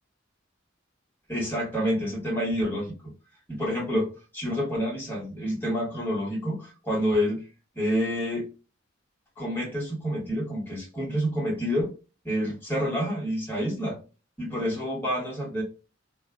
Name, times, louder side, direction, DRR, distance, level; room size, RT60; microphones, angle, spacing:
voice 1, 1.3-2.9 3.5-7.4 7.7-8.5 9.4-11.9 12.2-14.0 14.4-15.6, equal, 10° left, -3 dB, 1.4 m, -28 dB
2.6 x 2.3 x 3.5 m, 0.32 s
head